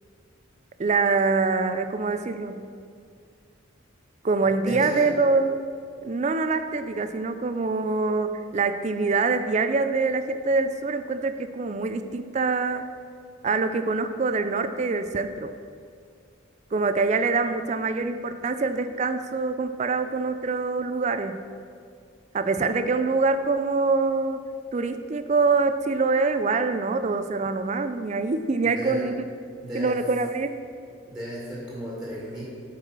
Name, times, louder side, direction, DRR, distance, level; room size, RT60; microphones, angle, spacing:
voice 1, 0.8-2.7 4.2-5.6 6.0-12.9 13.4-15.5 16.7-21.5 22.3-24.4 24.7-29.1 29.7-30.5, right 4 dB, 35° right, 10 dB, 0.3 m, -25 dB
voice 2, 4.6-5.1 28.6-29.0 29.6-30.0 31.1-32.4, equal, 5° right, -7 dB, 2.0 m, -34 dB
8.7 x 4.8 x 6.0 m, 2.2 s
head